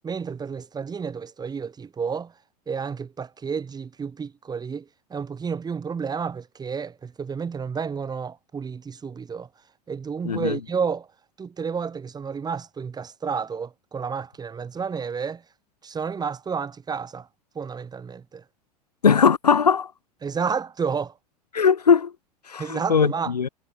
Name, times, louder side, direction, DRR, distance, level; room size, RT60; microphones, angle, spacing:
voice 1, 0.0-2.3 2.7-9.5 9.9-11.1 11.4-15.4 15.8-17.3 17.5-18.4 20.2-21.1 22.6-23.3, right 6 dB, 20° right, 3.0 m, -31 dB
voice 2, 10.2-10.6 19.0-19.9 21.5-22.1 22.5-23.5, left 6 dB, 90° left, 0.8 m, -19 dB
figure-of-eight pair, 90°, 20 cm